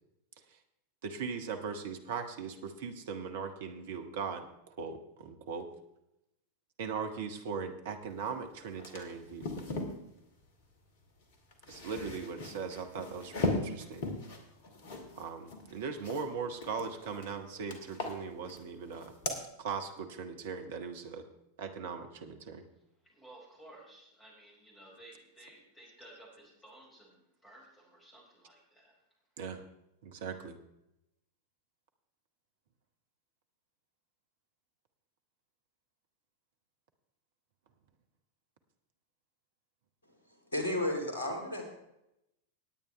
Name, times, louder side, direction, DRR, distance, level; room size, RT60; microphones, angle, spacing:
voice 1, 1.0-5.7 6.8-9.5 11.7-14.0 15.2-19.1 19.6-21.2 21.6-22.6 29.4-29.6 30.0-30.6, right 5 dB, 55° right, 6 dB, 1.4 m, -39 dB
sound 1, 8.3-8.4 8.6-10.0 11.3-16.3 16.6-17.3 17.7-18.7 18.9-19.4, left 2 dB, 50° left, 2.0 m, -38 dB
voice 2, 23.2-28.9, right 1 dB, 10° left, -3 dB, 5.0 m, -55 dB
voice 3, 40.5-41.6, left 1 dB, 70° left, 2 dB, 3.0 m, -32 dB
19.0 x 8.8 x 3.3 m, 0.85 s
figure-of-eight pair, 90°, 0 cm